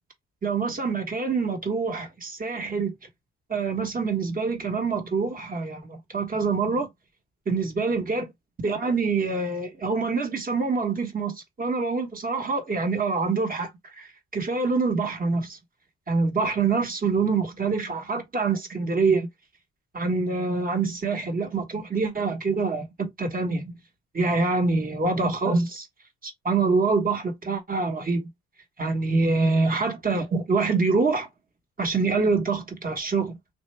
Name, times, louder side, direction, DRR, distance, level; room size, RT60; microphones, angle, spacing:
voice 1, 0.4-2.9 3.5-6.9 7.5-8.3 8.6-13.7 14.0-15.6 16.1-19.3 19.9-23.7 24.1-25.9 26.2-28.3 28.8-31.3 31.8-33.4, right 4 dB, 30° right, 1.2 m, -25 dB
3.3 x 2.4 x 3.2 m
cardioid pair, 90°, 30 cm